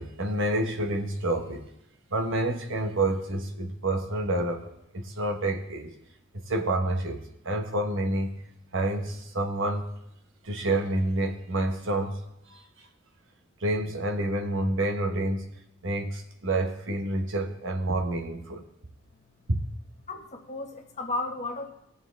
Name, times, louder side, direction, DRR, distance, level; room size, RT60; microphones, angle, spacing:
voice 1, 0.0-1.7 2.1-5.9 6.3-8.3 8.7-9.9 10.4-12.2 12.5-12.6 13.6-15.5 15.8-18.6 19.5-19.6, right 1 dB, 65° right, 4 dB, 1.2 m, -28 dB
voice 2, 20.1-21.7, left 2 dB, 35° left, 2 dB, 1.5 m, -34 dB
19.5 x 7.0 x 3.5 m, 0.84 s
head